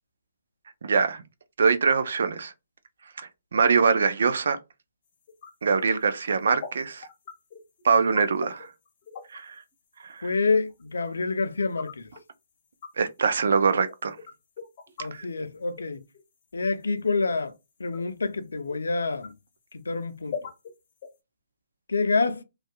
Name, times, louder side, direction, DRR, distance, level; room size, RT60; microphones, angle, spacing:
voice 1, 0.8-1.2 1.6-2.5 3.2-4.6 5.6-7.1 7.8-8.7 9.3-9.5 10.0-10.3 13.0-14.2 15.1-15.2, right 5 dB, 65° right, 0.4 m, -23 dB
sound 1, 5.3-5.5 5.8-6.0 6.3-6.4 6.6-6.7 7.0-9.4 9.7-9.8 10.5-11.1 11.8-12.2 12.8-12.9 13.6-13.7 13.9-15.3 15.8-16.2 16.5-16.7 17.3-17.4 17.9-18.0 18.9-19.0 19.2-19.3 20.3-20.7 21.0-21.1, left 7 dB, 40° left, 0.8 m, -39 dB
voice 2, 10.2-12.1 15.0-16.0 16.5-17.5 17.8-19.3 19.7-20.5 21.9-22.4, left 4 dB, 80° left, 0.5 m, -27 dB
2.6 x 2.3 x 2.2 m
hypercardioid pair, 140°, 0 cm